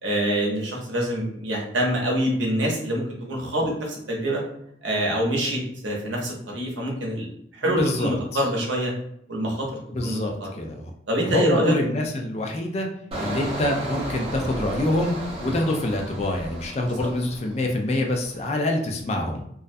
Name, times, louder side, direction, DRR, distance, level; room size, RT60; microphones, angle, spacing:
voice 1, 0.0-4.4 4.8-8.9 9.3-9.7 10.0-10.6 11.1-11.7, right 1 dB, 90° right, -1 dB, 0.7 m, -25 dB
voice 2, 7.6-8.4 9.9-10.9 11.2-12.9 13.2-15.2 15.4-19.4, left 1 dB, 35° left, 2 dB, 0.3 m, -26 dB
Engine, 13.1-17.8 18.1-18.5, right 1 dB, 30° right, 0.6 m, -34 dB
2.3 x 2.1 x 2.5 m, 0.73 s
head